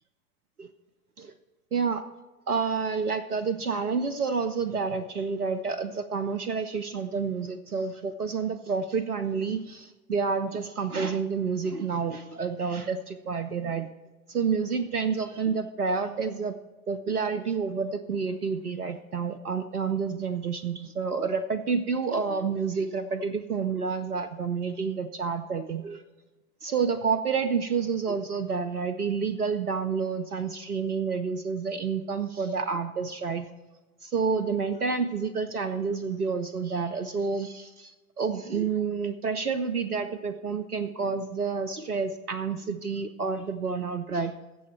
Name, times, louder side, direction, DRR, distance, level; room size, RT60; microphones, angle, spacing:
voice 1, 1.7-2.0 2.5-13.9 14.3-16.5 16.9-26.0 26.6-33.5 34.0-44.3, right 5 dB, 90° right, 12 dB, 0.6 m, -29 dB
15.5 x 7.0 x 4.3 m, 1.2 s
figure-of-eight pair, 90°, 44 cm